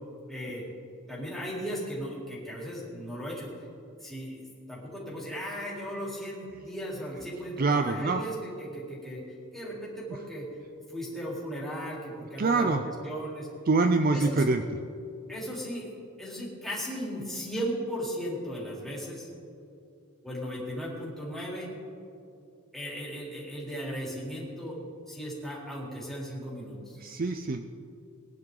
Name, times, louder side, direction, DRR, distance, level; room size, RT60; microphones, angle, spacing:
voice 1, 0.3-0.6 1.1-3.5 4.0-9.2 9.5-10.5 10.9-12.8 13.0-13.5 14.1-14.4 15.3-15.9 16.2-19.3 20.2-21.7 22.7-24.8 25.1-27.0, equal, ahead, -6 dB, 3.6 m, -36 dB
voice 2, 7.6-8.2 12.4-12.8 13.7-14.6 27.0-27.6, right 3 dB, 40° right, 7 dB, 0.5 m, -25 dB
21.0 x 11.0 x 3.8 m, 2.6 s
head